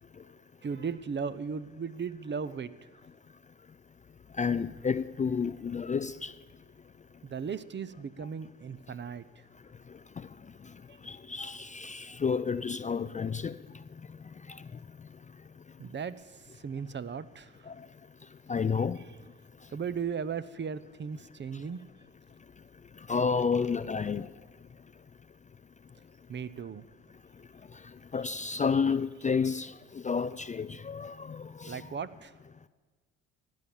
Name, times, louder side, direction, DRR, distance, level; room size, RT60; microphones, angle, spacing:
voice 1, 0.6-2.7 7.2-9.3 15.8-16.1 16.6-17.5 19.7-21.8 26.3-26.8 31.7-32.3, right 6 dB, 35° right, 0.7 m, -36 dB
voice 2, 4.4-6.3 11.0-13.6 14.5-14.6 17.7-17.8 18.5-19.0 23.1-24.3 28.1-31.8, left 5 dB, 25° left, 0.4 m, -30 dB
15.5 x 9.8 x 7.2 m
hypercardioid pair, 60°, 33 cm